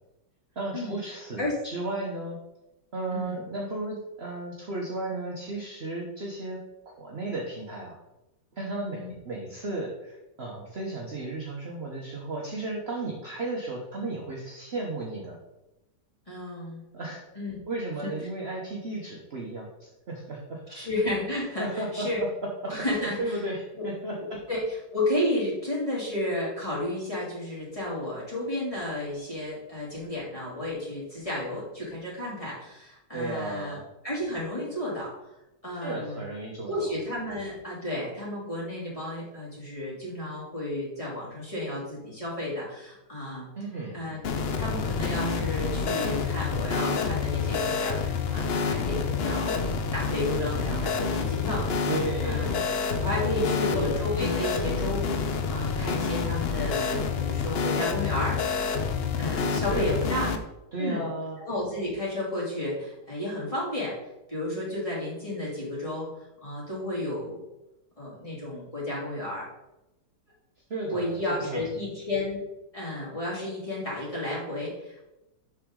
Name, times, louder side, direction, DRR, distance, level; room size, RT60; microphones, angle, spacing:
voice 1, 0.5-2.4 2.9-6.6 6.9-8.0 8.5-15.4 16.9-17.2 17.7-20.9 21.6-22.3 22.6-24.4 33.1-33.9 35.8-36.9 43.6-44.0 51.9-52.8 53.2-53.8 59.7-60.0 60.7-61.4 70.7-71.6, right 2 dB, 40° right, -2 dB, 1.1 m, -34 dB
voice 2, 16.3-16.8 17.3-17.6 18.0-18.1 20.7-22.2 22.7-23.4 23.7-23.8 24.2-24.6 24.9-33.8 34.0-35.1 35.6-36.2 36.7-43.5 43.9-44.2 44.6-51.9 52.2-52.6 53.0-58.4 59.2-60.3 60.8-61.0 61.4-63.9 64.3-66.1 66.4-67.5 68.0-69.5 70.9-72.4 72.7-75.1, left 1 dB, 20° left, -7 dB, 2.8 m, -32 dB
sound 1, 44.2-60.4, left 5 dB, 85° left, 0.5 m, -28 dB
7.4 x 6.2 x 3.8 m, 0.95 s
omnidirectional pair, 1.9 m